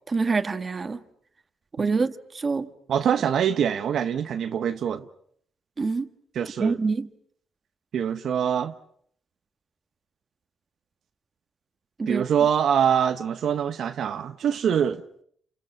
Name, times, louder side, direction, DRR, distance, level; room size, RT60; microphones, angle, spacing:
voice 1, 0.1-1.0 1.8-2.7 5.8-6.1 6.6-7.1 12.0-12.2, right 4 dB, 30° right, 1.6 m, -26 dB
voice 2, 2.9-5.0 6.3-6.8 7.9-8.7 12.1-15.0, right 8 dB, 65° right, 1.2 m, -24 dB
30.0 x 28.0 x 5.9 m
cardioid pair, 90°, 0 cm